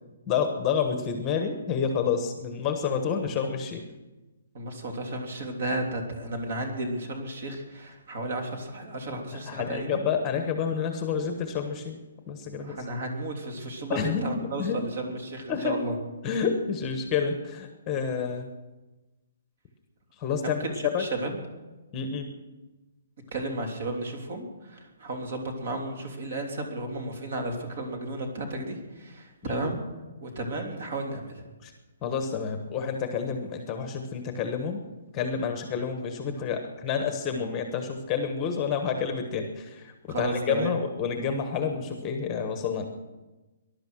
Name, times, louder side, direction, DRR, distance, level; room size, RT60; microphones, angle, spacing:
voice 1, 0.3-3.8 9.5-12.0 12.3-12.8 13.9-14.8 15.5-15.8 16.2-18.5 20.2-21.1 21.9-22.3 29.4-29.6 31.6-31.7 32.0-34.8 35.1-42.9, left 6 dB, 15° left, 6 dB, 1.2 m, -29 dB
voice 2, 4.5-10.0 12.6-16.0 20.4-21.4 23.3-29.8 30.2-31.4 40.1-40.7, right 2 dB, 45° right, 3 dB, 3.2 m, -33 dB
19.5 x 11.5 x 6.3 m, 1.1 s
hypercardioid pair, 175°, 0 cm